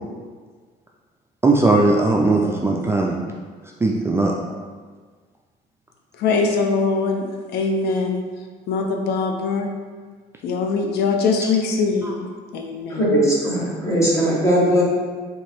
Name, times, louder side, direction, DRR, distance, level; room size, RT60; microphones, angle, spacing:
voice 1, 1.4-3.2 3.8-4.3, right 2 dB, 15° right, -1 dB, 0.4 m, -18 dB
voice 2, 6.2-8.2 8.7-9.7 10.4-13.1, left 4 dB, 75° left, 3 dB, 0.5 m, -22 dB
voice 3, 12.9-14.8, equal, 15° left, -5 dB, 1.3 m, -19 dB
3.5 x 2.9 x 4.4 m, 1.5 s
cardioid pair, 110°, 17 cm